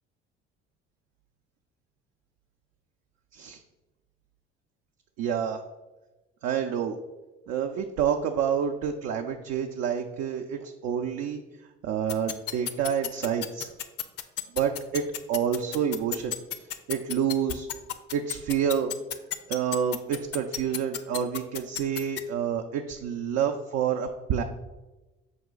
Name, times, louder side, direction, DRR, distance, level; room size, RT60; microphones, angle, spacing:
voice 1, 5.2-5.6 6.4-7.0 7.5-11.4 11.8-13.7 14.5-15.0 15.3-16.3 16.9-17.7 18.1-18.9 19.5-24.4, right 8 dB, 60° right, 4 dB, 0.4 m, -28 dB
sound 1, 12.1-22.2, left 11 dB, 55° left, 0.5 m, -31 dB
5.8 x 2.4 x 3.8 m, 1.1 s
hypercardioid pair, 65°, 30 cm